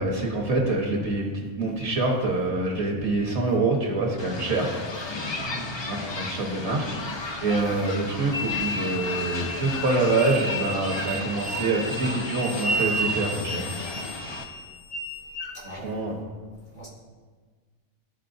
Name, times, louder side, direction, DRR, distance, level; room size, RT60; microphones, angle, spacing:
voice 1, 0.0-4.7 5.9-7.0 7.4-14.0 15.6-16.2, right 2 dB, 65° right, 0 dB, 1.3 m, -26 dB
sound 1, 4.2-14.4, left 3 dB, 40° left, 0.4 m, -35 dB
voice 2, 5.3-5.7 15.5-16.0 16.8-16.9, right 1 dB, 80° left, -8 dB, 2.4 m, -40 dB
sound 2, 8.3-15.5, right 1 dB, 65° left, 1.2 m, -32 dB
12.5 x 4.3 x 2.6 m, 1.5 s
omnidirectional pair, 1.2 m